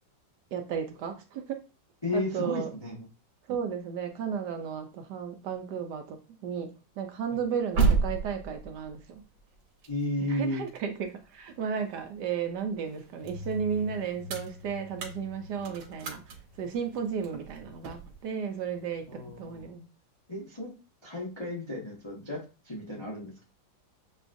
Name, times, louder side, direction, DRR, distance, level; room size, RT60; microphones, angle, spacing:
voice 1, 0.5-1.6 2.1-2.7 3.5-6.7 7.0-9.2 10.3-16.2 16.6-19.9, right 7 dB, 70° right, 1.1 m, -34 dB
voice 2, 2.0-3.0 9.9-10.6 19.1-19.7 20.3-20.7 21.0-23.4, left 1 dB, 30° left, 0.5 m, -33 dB
sound 1, 7.3-12.3 12.7-18.2, right 5 dB, 90° right, 1.5 m, -33 dB
sound 2, 13.2-18.3 18.5-19.6, left 2 dB, 65° left, 0.9 m, -46 dB
6.7 x 2.3 x 2.5 m
omnidirectional pair, 2.1 m